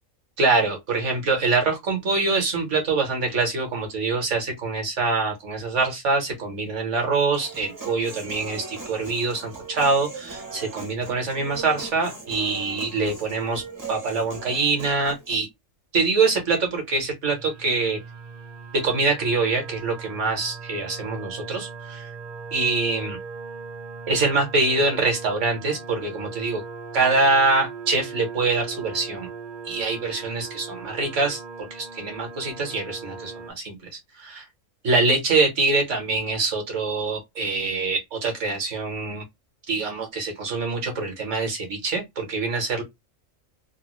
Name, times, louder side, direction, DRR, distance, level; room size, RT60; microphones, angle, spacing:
voice 1, 0.4-13.6 13.9-15.5 15.9-18.0 18.7-22.1 22.5-23.2 24.1-26.6 26.9-29.3 29.6-33.8 34.2-34.4 34.8-39.2 39.7-42.8, right 3 dB, 65° right, 1.4 m, -24 dB
Human voice, 7.3-15.3, right 4 dB, 20° right, 0.5 m, -38 dB
sound 1, 17.3-33.5, right 5 dB, 45° right, 0.8 m, -39 dB
3.3 x 2.1 x 3.0 m
omnidirectional pair, 1.4 m